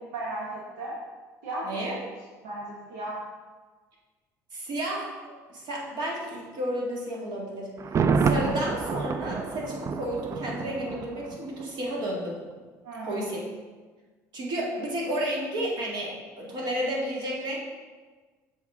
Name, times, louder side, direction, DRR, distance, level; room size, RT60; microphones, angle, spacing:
voice 1, 0.1-1.0 1.4-1.7 2.4-3.2 12.8-13.2, right 2 dB, 80° right, -5 dB, 1.1 m, -35 dB
voice 2, 1.6-2.0 4.5-7.7 8.1-12.4 13.0-13.5 14.3-17.6, right 1 dB, 55° right, -3 dB, 2.0 m, -32 dB
Thunder, 7.8-11.7 12.0-12.1, right 5 dB, 35° right, 0.4 m, -28 dB
7.2 x 4.1 x 3.6 m, 1.4 s
hypercardioid pair, 75°, 9 cm